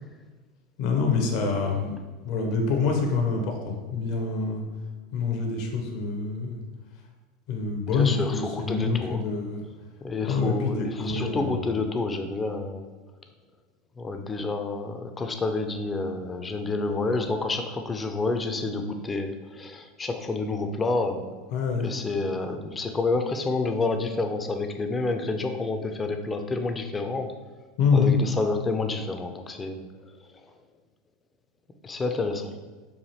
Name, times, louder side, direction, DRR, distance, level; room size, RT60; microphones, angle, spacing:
voice 1, 0.8-1.9 2.2-4.6 5.1-6.6 7.5-9.6 10.2-11.6 21.5-21.9 27.8-28.1, left 4 dB, 60° left, 3 dB, 0.7 m, -26 dB
voice 2, 7.9-9.2 10.0-12.9 14.0-21.3 21.8-27.3 27.9-29.8 31.8-32.5, left 3 dB, 20° left, 6 dB, 0.4 m, -29 dB
4.8 x 2.5 x 2.8 m, 1.3 s
hypercardioid pair, 85°, 0 cm